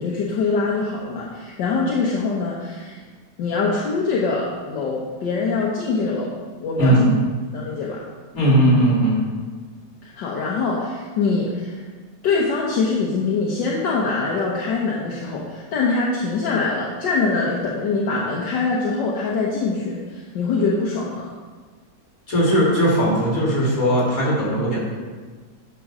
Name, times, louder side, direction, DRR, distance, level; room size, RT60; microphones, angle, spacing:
voice 1, 0.0-3.0 3.4-7.0 7.5-8.0 10.0-11.8 12.2-21.3, left 4 dB, 75° left, -4 dB, 1.6 m, -23 dB
voice 2, 6.8-7.1 8.3-9.2 22.3-24.8, right 1 dB, 50° left, -5 dB, 2.9 m, -18 dB
10.0 x 3.8 x 6.0 m, 1.4 s
omnidirectional pair, 2.0 m